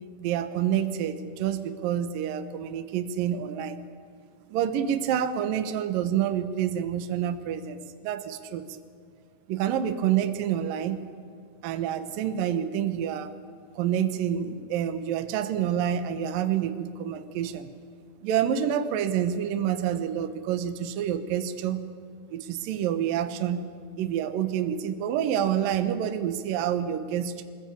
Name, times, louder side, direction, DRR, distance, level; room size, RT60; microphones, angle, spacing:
voice 1, 0.2-3.8 4.5-7.8 8.0-8.7 9.5-11.0 11.6-13.3 13.7-17.7 18.2-21.9 22.3-23.7 24.0-27.4, right 9 dB, 65° right, 9 dB, 2.4 m, -28 dB
23.0 x 20.5 x 8.6 m, 2.2 s
omnidirectional pair, 5.1 m